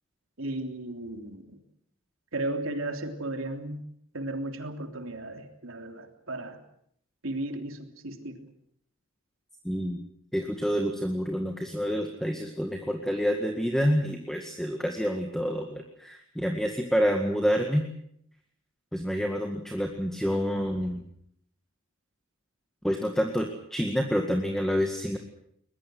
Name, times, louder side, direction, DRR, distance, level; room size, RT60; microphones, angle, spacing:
voice 1, 0.4-1.5 2.3-3.8 4.1-6.6 7.2-8.4, right 2 dB, 70° right, 5 dB, 3.4 m, -35 dB
voice 2, 9.6-10.0 10.3-17.9 18.9-21.0 22.8-25.2, equal, ahead, 3 dB, 1.9 m, -28 dB
22.0 x 21.0 x 7.8 m, 0.70 s
head